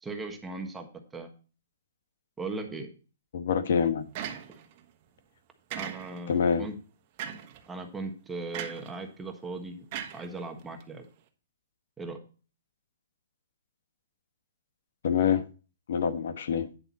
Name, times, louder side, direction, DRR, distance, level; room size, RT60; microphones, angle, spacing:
voice 1, 0.0-0.9 1.1-1.3 2.4-2.9 5.8-6.7 7.7-9.8 10.1-11.0 12.0-12.2, right 3 dB, 10° right, 1.3 m, -38 dB
voice 2, 3.3-4.0 6.3-6.6 15.0-15.4 15.9-16.7, left 7 dB, 65° left, 1.3 m, -25 dB
sound 1, 4.1-4.8 5.7-6.4 7.2-7.6 8.5-8.9 9.9-10.8, right 9 dB, 35° right, 1.4 m, -38 dB
9.9 x 7.0 x 4.1 m
hypercardioid pair, 160°, 0 cm